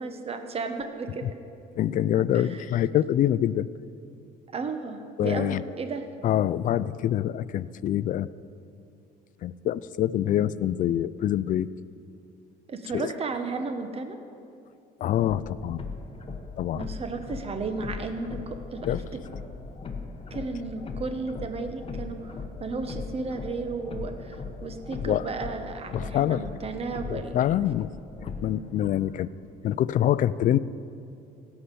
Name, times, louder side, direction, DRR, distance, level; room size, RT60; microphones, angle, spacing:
voice 1, 0.0-1.3 2.3-2.6 4.5-6.0 12.7-14.2 16.7-18.9 20.3-22.3 22.6-27.6, right 4 dB, 35° right, 7 dB, 1.2 m, -34 dB
voice 2, 1.8-3.7 5.2-5.7 6.2-8.3 9.4-11.7 12.9-13.1 15.0-15.8 16.6-16.9 18.9-19.0 25.0-25.3 25.9-26.5 27.1-27.9 28.2-29.3 29.6-30.6, left 11 dB, 50° left, 17 dB, 0.4 m, -25 dB
sound 1, 15.2-28.9, left 4 dB, 35° left, 1.3 m, -39 dB
16.5 x 5.8 x 8.4 m, 2.6 s
cardioid pair, 110°, 17 cm